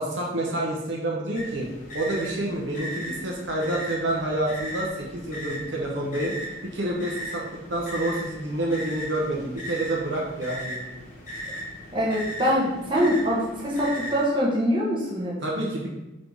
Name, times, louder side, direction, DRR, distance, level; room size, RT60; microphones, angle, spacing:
voice 1, 0.0-1.7 1.9-6.4 6.6-7.4 7.7-10.9 15.4-15.9, right 1 dB, 60° right, -2 dB, 0.8 m, -28 dB
sound 1, 1.3-14.2, equal, 40° left, 1.0 m, -37 dB
voice 2, 11.9-15.4, equal, 25° right, -5 dB, 0.9 m, -24 dB
3.8 x 3.5 x 3.4 m, 0.96 s
head